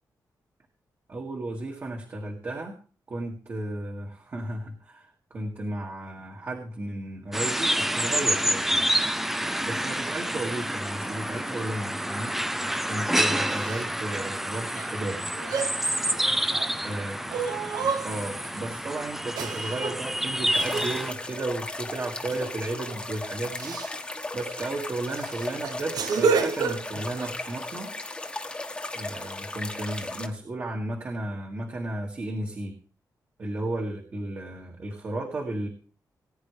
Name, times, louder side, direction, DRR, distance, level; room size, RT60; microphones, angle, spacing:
voice 1, 1.1-2.8 3.1-8.9 9.6-12.3 12.8-15.3 16.8-17.4 18.0-23.8 24.3-27.9 28.9-32.7 33.4-35.7, right 2 dB, 35° right, 0 dB, 2.2 m, -34 dB
sound 1, 7.3-21.1, right 1 dB, 5° right, 0.6 m, -28 dB
sound 2, 13.2-13.8 14.8-14.9 15.3-16.8 17.3-18.5 19.4-20.0 20.6-21.0 22.3-22.5 22.9-23.1 23.6-23.9 24.5-24.7 25.1-27.3, right 5 dB, 70° right, 1.0 m, -30 dB
sound 3, 20.5-30.3, left 2 dB, 15° left, 1.5 m, -36 dB
20.0 x 9.7 x 3.3 m, 0.39 s
wide cardioid pair, 165°, 7 cm